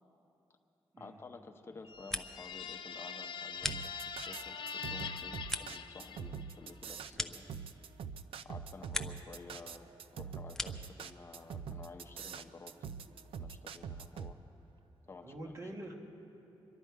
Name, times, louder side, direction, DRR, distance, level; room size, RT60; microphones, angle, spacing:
voice 1, 1.0-7.4 8.4-12.8 13.4-14.4 15.1-15.5, left 3 dB, 25° left, 5 dB, 0.8 m, -52 dB
sound 1, 1.8-6.6, left 6 dB, 60° left, 0.5 m, -43 dB
sound 2, 1.8-2.6 2.9-4.4 4.8-8.1 8.4-9.4 9.7-11.0, left 1 dB, 5° left, 0.4 m, -42 dB
sound 3, 3.7-14.3, right 6 dB, 80° right, 0.5 m, -44 dB
voice 2, 15.2-15.9, right 1 dB, 35° right, 1 dB, 1.6 m, -46 dB
25.5 x 11.5 x 4.7 m, 2.9 s
wide cardioid pair, 165°, 9 cm